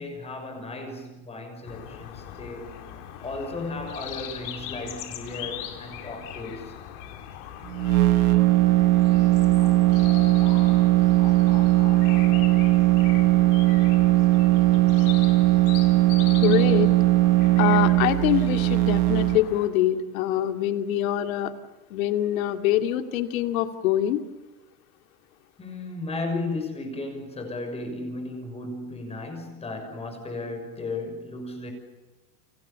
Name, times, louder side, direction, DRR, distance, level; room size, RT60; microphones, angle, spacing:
voice 1, 0.0-2.7 3.2-6.7 25.6-31.7, left 2 dB, 15° left, 6.1 m, -35 dB
sound 1, 1.6-19.7, left 10 dB, 50° left, 4.3 m, -40 dB
sound 2, 7.7-19.4, right 17 dB, 85° right, 1.5 m, -19 dB
voice 2, 16.4-16.9 17.6-21.5 21.9-24.2, left 12 dB, 70° left, 2.6 m, -24 dB
30.0 x 26.0 x 7.0 m
supercardioid pair, 160°, 43 cm